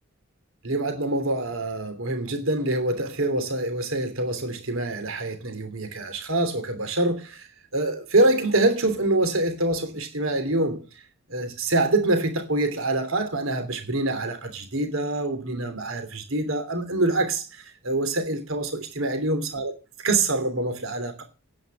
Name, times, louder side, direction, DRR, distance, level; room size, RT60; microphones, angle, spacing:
voice 1, 0.6-7.5 7.7-10.8 11.3-19.7 20.0-21.2, right 2 dB, 70° right, 3.1 m, -25 dB
10.5 x 9.4 x 7.7 m
head